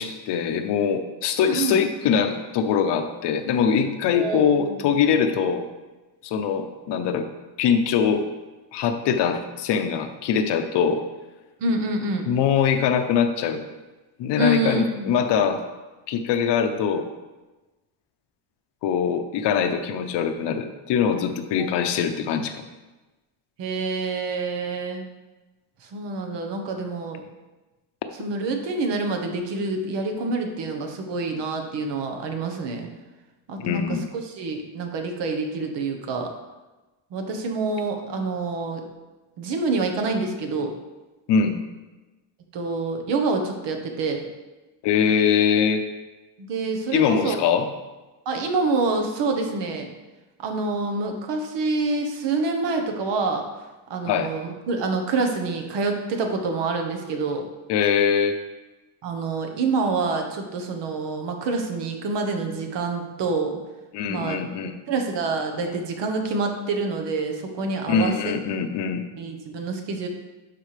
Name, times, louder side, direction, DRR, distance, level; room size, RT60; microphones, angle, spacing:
voice 1, 0.0-5.6 6.2-7.3 7.6-8.2 8.7-11.0 12.3-13.6 14.2-15.6 16.1-17.1 18.8-22.6 33.6-34.1 41.3-41.6 44.8-45.8 46.9-47.7 54.1-54.3 57.7-58.4 63.9-64.7 67.9-69.0, left 7 dB, 60° left, 7 dB, 0.8 m, -22 dB
voice 2, 1.4-1.8 4.1-4.8 11.6-12.3 14.4-15.1 21.6-21.8 23.6-25.0 25.9-27.2 28.2-32.9 33.5-34.0 34.2-36.3 37.1-38.8 39.4-40.7 42.5-44.2 46.4-47.4 48.2-49.9 50.4-53.4 53.9-57.4 59.0-63.6 64.1-64.4 64.9-68.3 69.2-70.1, right 3 dB, 60° right, 4 dB, 1.2 m, -27 dB
11.5 x 4.3 x 3.3 m, 1.1 s
cardioid pair, 140°, 48 cm